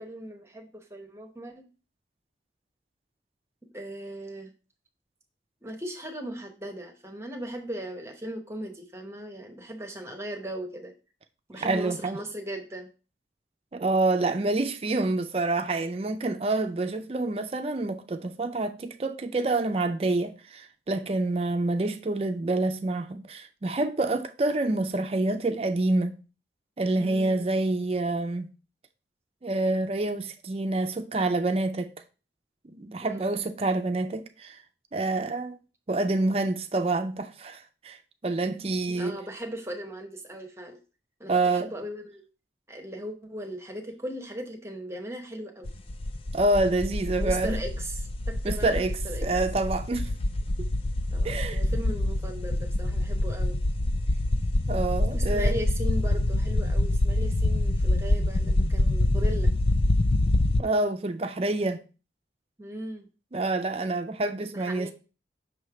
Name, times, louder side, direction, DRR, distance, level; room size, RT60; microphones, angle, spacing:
voice 1, 0.0-1.7 3.6-4.5 5.6-10.9 11.5-12.9 26.9-27.5 33.0-33.3 38.9-40.8 41.2-42.3 42.7-45.7 47.2-49.3 51.1-53.6 55.1-59.5 62.6-63.1 64.5-64.9, equal, 15° right, 0.9 m, -38 dB
voice 2, 11.6-12.2 13.7-26.2 26.8-28.5 29.4-31.9 32.6-34.6 34.9-35.6 35.9-38.0 38.2-39.1 41.3-41.7 46.3-47.6 48.4-50.1 50.6-50.7 51.2-51.6 54.7-55.6 60.6-61.8 63.3-64.9, right 2 dB, 35° right, 0.4 m, -27 dB
sound 1, 45.7-60.6, left 1 dB, 30° left, 0.4 m, -26 dB
6.2 x 3.2 x 4.8 m
head